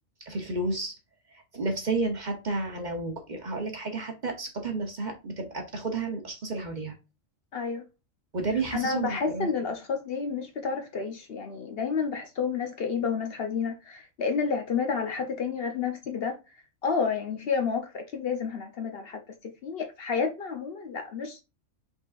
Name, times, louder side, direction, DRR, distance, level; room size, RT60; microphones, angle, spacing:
voice 1, 0.3-0.9 1.3-7.0 8.3-9.5, right 3 dB, 40° right, 0.8 m, -31 dB
voice 2, 7.5-7.8 8.7-16.4 16.8-21.4, left 5 dB, 55° left, 0.8 m, -30 dB
5.2 x 3.7 x 2.4 m
omnidirectional pair, 1.3 m